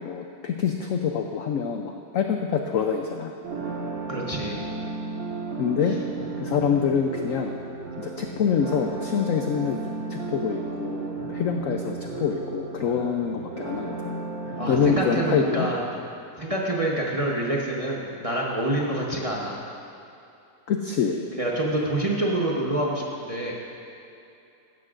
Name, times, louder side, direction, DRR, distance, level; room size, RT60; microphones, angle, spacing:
voice 1, 0.0-3.3 5.6-6.0 6.4-7.6 8.0-14.2 14.7-15.7 18.8-18.9 20.7-21.3, left 6 dB, 80° left, 3 dB, 0.7 m, -26 dB
sound 1, 3.4-15.4, right 3 dB, 70° right, 2.3 m, -34 dB
voice 2, 4.1-4.6 14.6-15.8 16.4-19.6 21.3-23.5, right 1 dB, 25° right, -3 dB, 0.7 m, -27 dB
16.0 x 12.0 x 2.5 m, 2.7 s
omnidirectional pair, 2.0 m